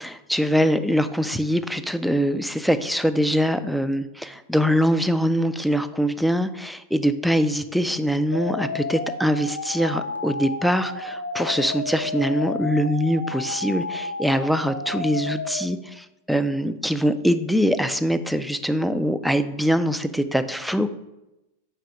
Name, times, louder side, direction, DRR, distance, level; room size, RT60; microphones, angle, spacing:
voice 1, 0.0-20.9, equal, ahead, 11 dB, 0.3 m, -23 dB
sound 1, 8.3-15.7, left 3 dB, 85° left, 0.4 m, -31 dB
4.7 x 4.0 x 5.1 m, 0.96 s
figure-of-eight pair, 90°, 0 cm